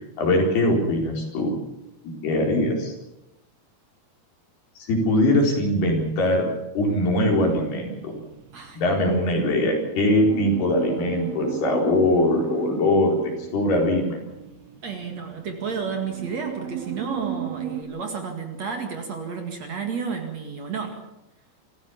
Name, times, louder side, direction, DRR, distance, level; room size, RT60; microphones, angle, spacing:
voice 1, 0.2-1.5 2.0-2.9 4.9-6.5 6.7-8.1 8.7-13.2 13.5-14.2, left 1 dB, 75° left, 1 dB, 6.3 m, -21 dB
sound 1, 6.9-17.8, right 9 dB, 75° right, 3.3 m, -36 dB
voice 2, 14.8-21.0, right 5 dB, 50° right, 4 dB, 2.9 m, -31 dB
26.0 x 15.0 x 7.1 m, 0.93 s
omnidirectional pair, 4.7 m